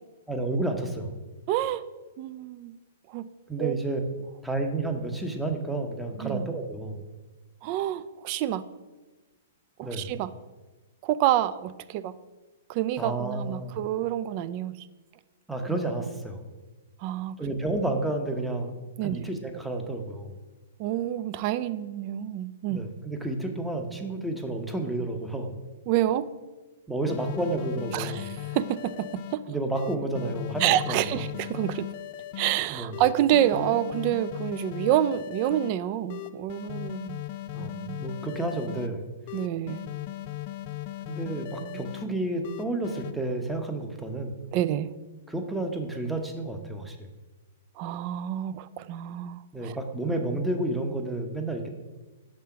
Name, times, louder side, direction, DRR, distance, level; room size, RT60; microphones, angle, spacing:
voice 1, 0.3-1.2 3.5-4.0 4.4-7.0 9.8-10.1 13.0-13.8 15.5-16.5 17.4-18.7 19.0-20.4 22.7-25.5 26.9-28.3 29.5-31.2 32.7-32.9 37.5-39.1 41.1-44.4 45.3-47.1 49.5-51.7, right 2 dB, 5° right, 4 dB, 0.8 m, -31 dB
voice 2, 1.5-1.8 2.2-2.7 3.1-3.3 3.6-3.7 6.2-6.5 7.6-8.6 9.8-10.3 11.0-12.1 12.7-14.7 17.0-17.4 19.0-19.3 20.8-22.9 25.9-26.3 27.9-29.4 30.6-31.9 32.4-37.2 37.6-38.0 39.3-39.9 41.6-41.8 44.5-44.9 47.8-49.8, right 12 dB, 45° right, 14 dB, 0.3 m, -28 dB
sound 1, 27.1-29.4 29.8-32.5 32.9-35.7 36.1-38.9 39.3-42.1 42.4-43.1, left 15 dB, 50° left, 0.3 m, -38 dB
5.5 x 3.7 x 5.7 m, 1.2 s
hypercardioid pair, 120°, 0 cm